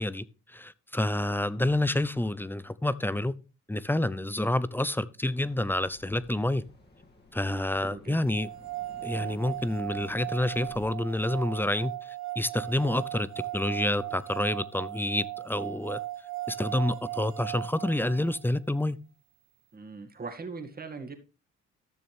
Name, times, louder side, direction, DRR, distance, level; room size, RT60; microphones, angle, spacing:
voice 1, 0.0-3.3 3.7-6.6 7.3-8.5 9.0-16.0 16.5-19.0, left 1 dB, 5° left, 0.7 m, -28 dB
sound 1, 5.3-10.9, left 2 dB, 35° left, 2.6 m, -54 dB
voice 2, 7.5-8.2 9.2-9.4 19.7-21.1, right 4 dB, 30° right, 2.2 m, -41 dB
sound 2, 8.3-18.5, right 16 dB, 65° right, 1.3 m, -38 dB
14.0 x 6.9 x 3.5 m
cardioid pair, 90°, 30 cm